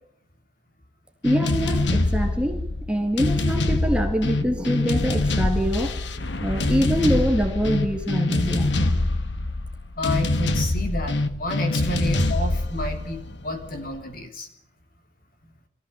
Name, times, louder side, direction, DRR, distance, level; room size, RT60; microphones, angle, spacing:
sound 1, 1.2-14.0, left 2 dB, 70° left, 1.3 m, -25 dB
voice 1, 1.2-2.6 2.9-6.0 6.4-9.1, equal, 5° right, 3 dB, 2.0 m, -24 dB
voice 2, 10.0-14.5, left 1 dB, 50° left, 5 dB, 3.3 m, -30 dB
23.0 x 15.0 x 7.7 m, 0.73 s
head